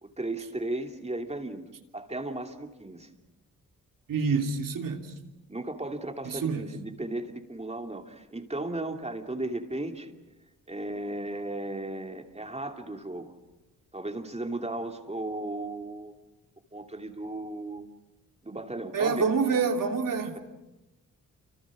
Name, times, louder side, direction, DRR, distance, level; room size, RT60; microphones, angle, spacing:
voice 1, 0.0-1.7 1.9-3.1 5.5-10.1 10.7-13.3 13.9-16.1 16.7-17.9 18.4-19.2, right 2 dB, 20° right, 4 dB, 2.8 m, -35 dB
voice 2, 4.1-5.1 6.2-6.7 18.9-20.4, right 5 dB, 70° right, 4 dB, 3.1 m, -27 dB
28.5 x 25.5 x 6.3 m, 0.99 s
cardioid pair, 70°, 34 cm